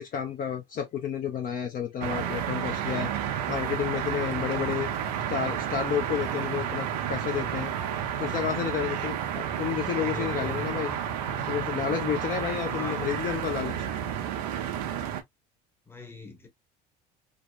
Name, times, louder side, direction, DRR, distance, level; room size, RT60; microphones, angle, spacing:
voice 1, 0.0-3.1 3.5-4.9 5.3-7.7 8.2-11.0 11.5-13.8, left 8 dB, 45° left, 0.6 m, -31 dB
sound 1, 2.0-15.2, right 9 dB, 80° right, 0.5 m, -31 dB
voice 2, 9.9-10.6 12.7-13.2 15.9-16.5, left 3 dB, 10° left, 0.9 m, -41 dB
2.7 x 2.1 x 2.3 m
hypercardioid pair, 80°, 20 cm